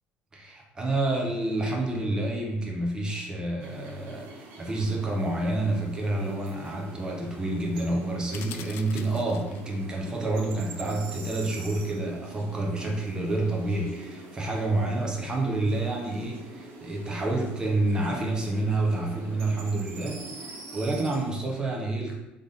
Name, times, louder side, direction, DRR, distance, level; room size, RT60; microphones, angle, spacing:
voice 1, 0.3-22.2, right 2 dB, 20° right, 0 dB, 0.8 m, -29 dB
sound 1, 3.6-21.3, right 2 dB, 65° right, 0.9 m, -45 dB
sound 2, 8.3-9.8, left 9 dB, 65° left, 0.3 m, -44 dB
3.6 x 3.5 x 4.0 m, 0.96 s
cardioid pair, 135°, 4 cm